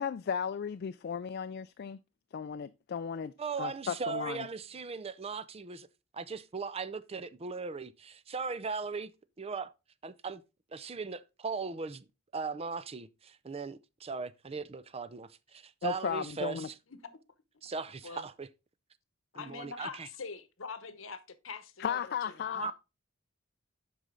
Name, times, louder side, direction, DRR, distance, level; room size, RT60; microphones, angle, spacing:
voice 1, 0.0-2.0 2.3-3.3 3.6-4.5 15.8-16.7 21.8-22.7, left 7 dB, 50° left, 0.3 m, -35 dB
voice 2, 3.4-5.9 6.1-9.1 9.4-9.7 10.0-10.4 10.7-12.1 12.3-16.7 17.6-18.5 19.3-20.1 22.6-22.7, right 5 dB, 30° right, 0.5 m, -38 dB
voice 3, 19.3-22.0 22.4-22.7, left 5 dB, 75° left, 1.0 m, -44 dB
8.0 x 5.5 x 3.7 m
head